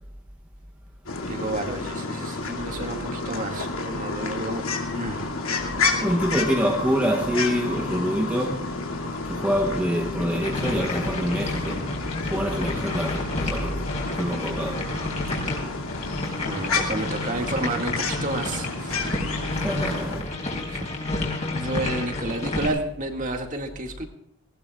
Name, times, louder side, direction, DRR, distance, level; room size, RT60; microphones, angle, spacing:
sound 1, 1.1-20.2, left 3 dB, 85° left, 2.5 m, -30 dB
voice 1, 1.3-4.6 4.9-5.3 16.4-19.0 20.7-20.9 21.5-24.1, right 2 dB, 35° right, 2.1 m, -30 dB
voice 2, 6.0-8.8 9.3-14.9 19.5-20.6, equal, 5° right, 0.8 m, -26 dB
sound 2, 10.4-22.7, left 2 dB, 35° left, 4.8 m, -31 dB
19.5 x 19.5 x 2.4 m
head